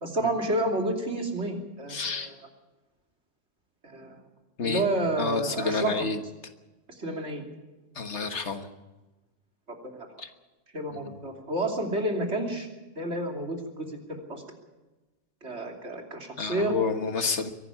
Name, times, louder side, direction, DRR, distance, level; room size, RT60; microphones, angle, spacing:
voice 1, 0.0-2.3 3.8-4.2 4.6-6.0 7.0-7.4 9.9-10.1 10.7-12.7 13.0-14.4 15.4-17.1, right 1 dB, 60° right, 2 dB, 3.3 m, -30 dB
voice 2, 1.9-2.3 4.6-4.9 5.2-6.2 8.0-8.7 10.2-10.3 10.9-11.2 16.4-17.5, left 4 dB, 65° left, 8 dB, 1.8 m, -29 dB
23.0 x 12.0 x 9.7 m, 1.1 s
omnidirectional pair, 1.3 m